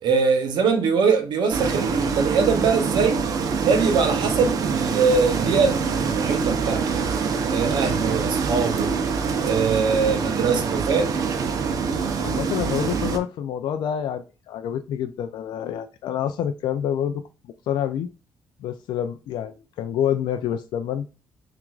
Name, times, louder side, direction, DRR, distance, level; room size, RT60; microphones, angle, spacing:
voice 1, 0.0-3.2 3.6-7.1 7.5-8.9 9.4-11.2, right 5 dB, 80° right, 0.9 m, -22 dB
sound 1, 1.5-13.2, right 5 dB, 50° right, 0.6 m, -25 dB
voice 2, 12.2-17.2 17.7-18.1 18.6-21.1, left 9 dB, 90° left, 0.3 m, -27 dB
5.8 x 2.5 x 2.4 m
cardioid pair, 150°, 8 cm